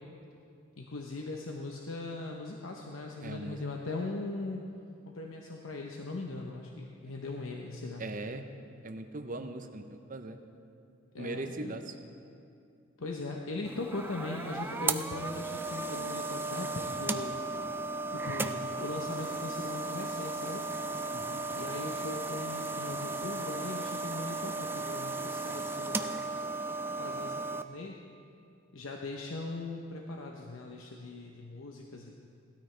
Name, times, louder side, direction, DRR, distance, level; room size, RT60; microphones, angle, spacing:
voice 1, 0.8-4.7 5.1-8.0 11.1-11.8 13.0-17.4 18.1-20.7 21.5-26.2 27.0-28.0 28.7-32.2, left 2 dB, 85° left, 1 dB, 0.8 m, -39 dB
voice 2, 3.2-3.6 7.0-7.1 8.0-8.5 8.8-10.4 11.2-11.9 21.1-21.4, right 2 dB, 40° right, 7 dB, 0.7 m, -40 dB
sound 1, 13.7-27.6, right 3 dB, 10° right, 0.3 m, -35 dB
17.5 x 13.0 x 3.3 m, 2.5 s
head